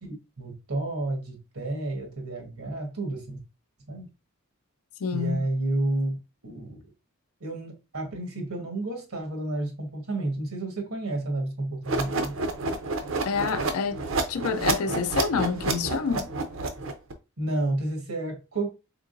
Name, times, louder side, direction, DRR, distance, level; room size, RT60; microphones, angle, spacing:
voice 1, 0.0-3.4 3.9-4.1 5.1-6.2 6.4-6.8 7.4-12.4 17.4-18.7, right 2 dB, 85° right, 1.5 m, -31 dB
voice 2, 5.0-5.4 13.2-14.0 14.3-16.3, left 5 dB, 80° left, 0.4 m, -27 dB
sound 1, 11.8-17.1, right 3 dB, 65° right, 0.7 m, -29 dB
3.7 x 3.7 x 2.5 m
head